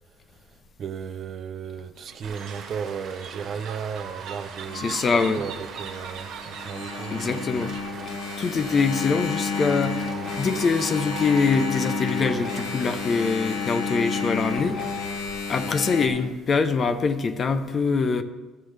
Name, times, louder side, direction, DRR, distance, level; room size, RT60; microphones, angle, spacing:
voice 1, 0.3-7.6, right 7 dB, 40° right, 0.5 m, -35 dB
sound 1, 2.0-7.9, right 7 dB, 75° right, 0.9 m, -41 dB
sound 2, 2.2-16.5, right 6 dB, 60° right, 1.4 m, -41 dB
Engine, 4.7-16.1, left 5 dB, 70° left, 1.0 m, -31 dB
voice 2, 4.7-5.4 7.1-7.7 8.4-10.1 10.3-14.8 15.5-18.2, left 4 dB, 30° left, 0.6 m, -24 dB
13.0 x 7.6 x 3.3 m
cardioid pair, 130°, 0 cm